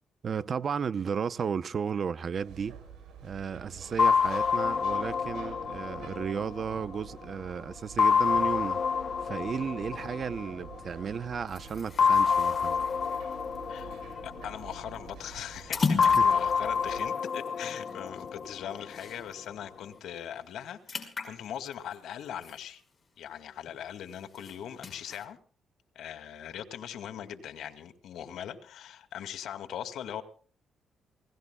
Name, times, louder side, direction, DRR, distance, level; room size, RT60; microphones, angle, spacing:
voice 1, 0.2-2.8 3.2-8.8 9.2-12.8 15.9-16.3, right 6 dB, 45° right, 0.7 m, -34 dB
sound 1, 2.3-17.0, right 7 dB, 80° right, 7.4 m, -48 dB
sound 2, 4.0-7.3 8.0-10.9 12.0-15.1 16.0-19.1, left 6 dB, 50° left, 0.9 m, -28 dB
sound 3, 11.5-19.5 19.9-20.0 20.3-23.3 23.7-25.3, left 4 dB, 30° left, 5.2 m, -39 dB
voice 2, 14.2-22.8 23.2-25.4 26.0-30.2, left 9 dB, 75° left, 2.4 m, -40 dB
28.0 x 18.5 x 2.3 m
cardioid pair, 90°, 0 cm